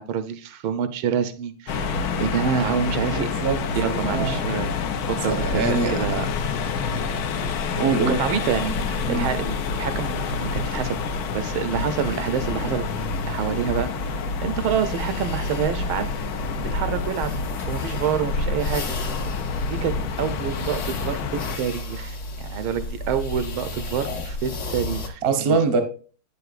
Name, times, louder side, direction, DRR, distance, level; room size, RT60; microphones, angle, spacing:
voice 1, 0.0-3.3 3.8-4.7 5.0-6.3 8.1-8.7 9.1-11.0 11.3-12.8 13.3-16.1 16.7-17.3 17.7-19.0 19.7-25.6, right 7 dB, 80° right, 11 dB, 1.4 m, -27 dB
sound 1, 1.7-21.6, left 5 dB, 70° left, 0.9 m, -28 dB
voice 2, 3.1-4.4 5.3-5.9 7.8-8.2 9.1-9.3 25.2-25.8, right 4 dB, 45° right, 7 dB, 0.8 m, -23 dB
sound 2, 8.4-25.1, left 1 dB, 50° left, 1.0 m, -34 dB
8.5 x 6.8 x 2.4 m, 0.40 s
omnidirectional pair, 2.3 m